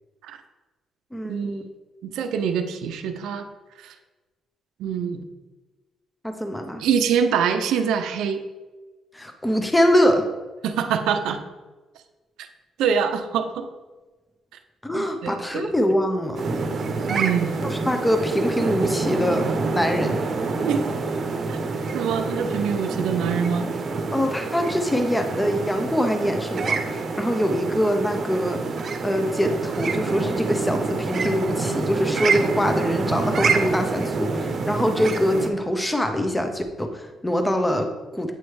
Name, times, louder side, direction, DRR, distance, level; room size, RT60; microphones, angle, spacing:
voice 1, 1.1-1.6 6.2-6.8 9.1-10.3 14.8-16.4 17.7-19.5 19.7-20.2 24.1-28.6 29.0-38.3, equal, 10° left, 6 dB, 0.7 m, -24 dB
voice 2, 2.0-3.5 3.8-3.9 4.8-5.2 6.8-8.4 10.6-11.4 12.8-13.7 14.9-15.7 17.1-17.6 20.6-20.9 21.5-21.6 21.9-23.7, right 7 dB, 85° right, 7 dB, 0.5 m, -24 dB
sound 1, 16.4-35.5, right 4 dB, 50° right, 0.8 m, -26 dB
8.3 x 3.1 x 4.7 m, 1.2 s
cardioid pair, 90°, 0 cm